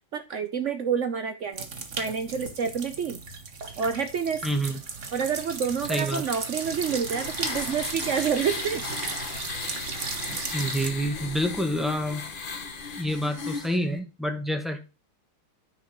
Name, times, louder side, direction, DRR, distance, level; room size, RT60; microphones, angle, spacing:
voice 1, 0.1-1.7 2.0-3.2 3.8-4.5 5.1-8.9, right 7 dB, 90° right, 8 dB, 0.6 m, -28 dB
sound 1, 1.5-10.9, right 4 dB, 40° right, 1.5 m, -35 dB
voice 2, 4.4-4.8 5.9-6.2 10.5-12.6 13.0-14.8, equal, ahead, 4 dB, 0.8 m, -28 dB
sound 2, 6.3-13.8, left 5 dB, 45° left, 0.6 m, -36 dB
9.7 x 4.7 x 5.9 m, 0.31 s
omnidirectional pair, 2.3 m